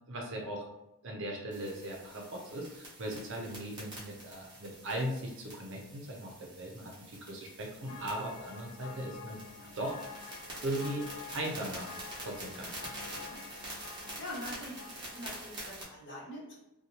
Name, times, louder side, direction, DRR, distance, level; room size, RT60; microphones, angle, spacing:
voice 1, 0.1-0.7 1.0-9.4 9.8-10.0 10.6-11.1 11.3-11.9 12.2-12.9, right 1 dB, 55° right, 0 dB, 0.6 m, -38 dB
sound 1, 1.5-15.8, right 1 dB, 20° right, 0.8 m, -47 dB
sound 2, 7.9-15.5, left 5 dB, 85° left, 0.3 m, -49 dB
voice 2, 13.1-13.4 14.2-16.6, left 1 dB, 55° left, -5 dB, 1.0 m, -45 dB
2.7 x 2.2 x 2.8 m, 0.92 s
head